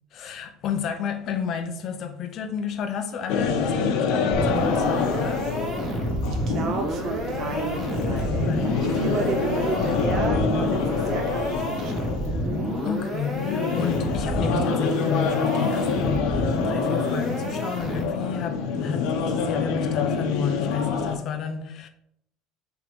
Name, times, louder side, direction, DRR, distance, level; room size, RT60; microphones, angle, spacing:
voice 1, 0.1-5.6 8.5-9.3 12.8-21.9, left 7 dB, 35° left, 0.6 m, -31 dB
sound 1, 3.3-21.2, left 5 dB, 60° left, 0.9 m, -27 dB
sound 2, 4.3-18.4, equal, 20° right, 1.1 m, -30 dB
sound 3, 4.3-11.6, left 1 dB, 65° right, 1.9 m, -40 dB
voice 2, 6.2-12.7, right 4 dB, 35° right, 0.5 m, -32 dB
6.1 x 3.6 x 5.3 m
cardioid pair, 175°, 0 cm